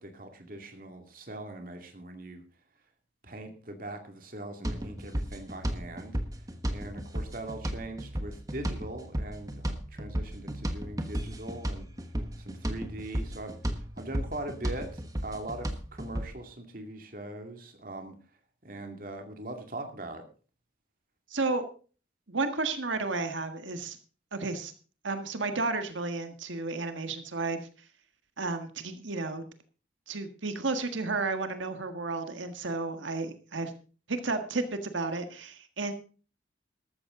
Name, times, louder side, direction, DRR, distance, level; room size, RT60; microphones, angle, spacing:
voice 1, 0.0-2.4 3.2-6.2 6.7-11.9 12.4-18.2 18.6-20.3, right 1 dB, 45° right, 5 dB, 2.3 m, -41 dB
sound 1, 4.6-16.3, equal, 20° right, 1.2 m, -35 dB
voice 2, 21.3-21.6 22.3-24.0 24.3-24.7 25.0-27.9 28.4-29.4 30.1-33.7 34.1-35.9, right 3 dB, 85° right, 8 dB, 1.7 m, -32 dB
13.5 x 13.5 x 3.8 m, 0.38 s
head